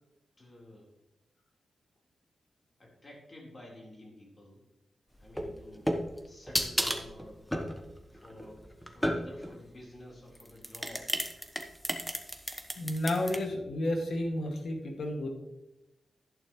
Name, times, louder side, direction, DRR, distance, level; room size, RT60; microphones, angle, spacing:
voice 1, 0.4-0.9 2.8-4.6 5.2-5.9 6.2-7.4 8.1-11.1, left 1 dB, 35° left, -3 dB, 4.2 m, -51 dB
sound 1, 5.2-9.6 10.3-13.4, equal, 5° left, 1.2 m, -33 dB
voice 2, 12.8-15.3, left 1 dB, 75° left, 2 dB, 2.2 m, -31 dB
11.5 x 11.0 x 3.2 m, 0.90 s
wide cardioid pair, 95°, 0 cm